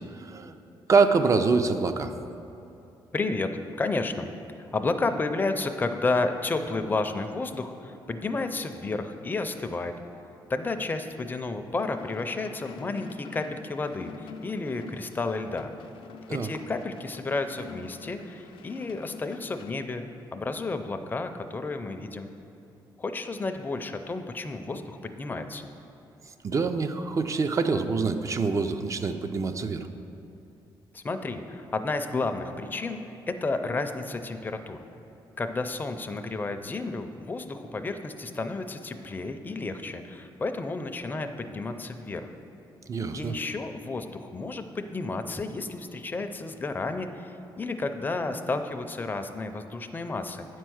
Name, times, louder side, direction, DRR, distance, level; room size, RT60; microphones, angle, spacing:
voice 1, 0.1-0.5 0.9-2.1 16.3-16.5 26.4-29.9 42.9-43.3, right 4 dB, 35° right, 9 dB, 0.5 m, -25 dB
voice 2, 3.1-3.5 3.8-4.3 4.7-9.9 10.5-15.7 16.3-20.0 20.3-22.3 23.0-25.7 30.9-34.8 35.4-42.3 43.1-47.3 47.6-50.5, left 3 dB, 20° left, 7 dB, 0.5 m, -31 dB
sound 1, 11.8-19.7, left 5 dB, 85° left, 0.5 m, -46 dB
9.2 x 4.5 x 6.3 m, 2.8 s
cardioid pair, 105°, 9 cm